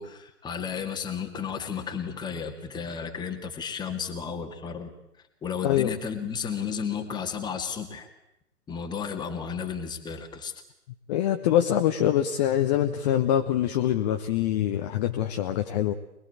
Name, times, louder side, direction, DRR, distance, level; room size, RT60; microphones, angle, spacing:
voice 1, 0.0-4.9 5.4-8.1 8.7-10.5, left 6 dB, 10° left, 4 dB, 2.1 m, -33 dB
voice 2, 11.1-15.9, left 11 dB, 25° left, 5 dB, 1.1 m, -24 dB
24.5 x 21.0 x 8.6 m, 0.83 s
figure-of-eight pair, 125°, 45 cm